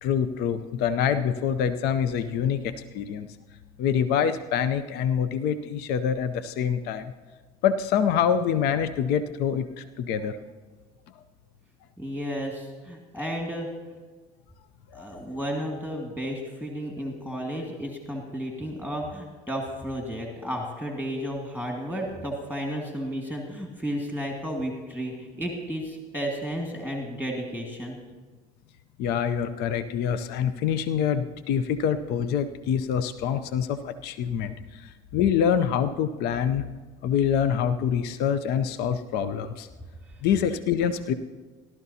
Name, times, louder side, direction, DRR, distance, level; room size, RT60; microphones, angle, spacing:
voice 1, 0.0-3.3 3.8-7.1 7.6-10.4 14.9-15.2 29.0-36.7 37.0-39.7 40.2-41.1, left 8 dB, 65° left, 11 dB, 0.6 m, -26 dB
voice 2, 12.0-13.7 14.9-28.0 40.0-40.2, equal, 10° left, -1 dB, 2.0 m, -33 dB
18.0 x 12.0 x 2.8 m, 1.3 s
supercardioid pair, 85°, 18 cm